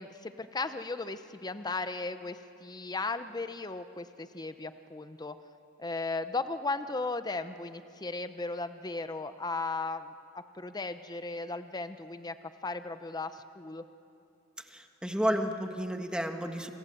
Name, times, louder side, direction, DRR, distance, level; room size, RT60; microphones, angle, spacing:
voice 1, 0.0-5.4 5.8-12.4 12.6-13.8, left 3 dB, 20° left, 11 dB, 0.7 m, -36 dB
voice 2, 14.7-16.7, equal, 5° right, 5 dB, 1.5 m, -31 dB
27.0 x 27.0 x 7.8 m, 2.7 s
head